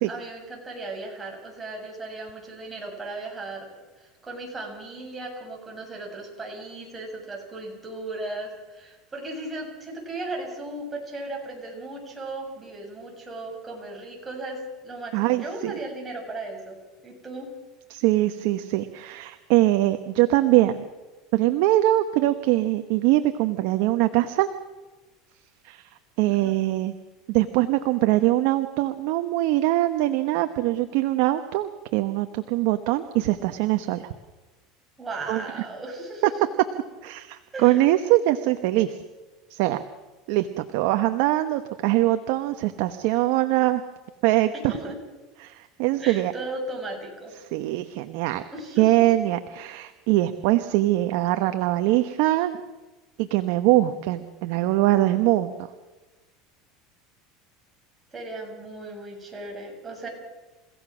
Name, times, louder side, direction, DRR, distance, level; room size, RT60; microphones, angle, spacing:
voice 1, 0.1-3.7 4.0-16.8 17.0-17.5 26.3-26.6 35.0-36.3 37.5-37.8 44.7-45.0 46.0-47.3 48.5-49.0 58.1-60.1, right 2 dB, 20° right, 0 dB, 7.3 m, -36 dB
voice 2, 15.1-15.8 17.9-20.8 21.3-24.5 25.6-25.9 26.2-26.9 27.3-34.1 35.3-35.4 37.0-39.0 39.5-39.8 40.3-43.8 44.2-44.7 45.4-46.3 47.5-48.4 48.8-52.5 53.2-55.5, right 16 dB, 70° right, 8 dB, 1.2 m, -22 dB
30.0 x 16.5 x 6.3 m, 1.2 s
supercardioid pair, 120°, 0 cm